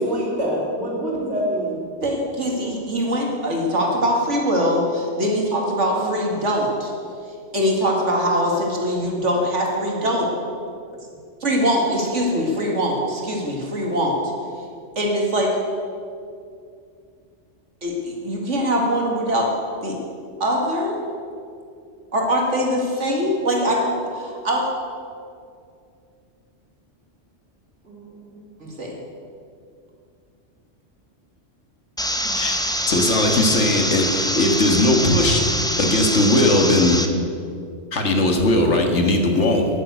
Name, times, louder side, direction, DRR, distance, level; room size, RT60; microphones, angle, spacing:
voice 1, 0.0-1.7 5.9-6.4 27.9-28.4 32.2-32.4, equal, 60° right, -4 dB, 3.5 m, -26 dB
voice 2, 2.0-6.9 7.5-10.3 11.4-14.2 15.0-15.6 17.8-19.5 19.8-20.0 20.4-21.0 22.1-24.7 28.6-29.0, equal, 75° right, 0 dB, 2.5 m, -22 dB
sound 1, 32.0-37.1, equal, 5° left, 0.5 m, -24 dB
voice 3, 32.4-35.4 35.8-37.0 37.9-39.7, left 1 dB, 70° left, 3 dB, 1.8 m, -19 dB
11.0 x 9.4 x 8.0 m, 2.4 s
omnidirectional pair, 1.3 m